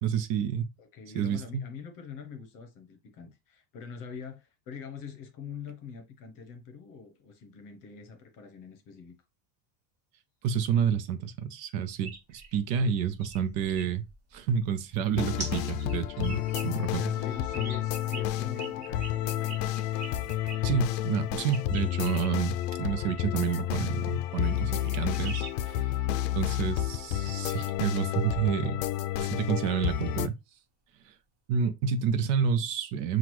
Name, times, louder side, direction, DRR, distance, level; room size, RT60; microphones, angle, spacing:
voice 1, 0.0-0.6 1.1-1.6 10.4-14.0 14.3-17.1 20.6-25.9 26.3-28.8 29.2-30.3 31.1-31.2 31.5-33.2, right 7 dB, 60° right, 0.7 m, -29 dB
voice 2, 0.8-9.2 16.8-19.6, left 6 dB, 40° left, 0.9 m, -44 dB
sound 1, 5.6-19.8, right 1 dB, 15° right, 1.6 m, -51 dB
sound 2, 12.0-15.1 15.4-16.7 17.1-20.6 21.5-25.8 31.6-31.7, right 4 dB, 35° right, 1.5 m, -46 dB
sound 3, 15.1-30.3, left 12 dB, 80° left, 0.5 m, -30 dB
5.8 x 2.4 x 3.0 m
cardioid pair, 150°, 48 cm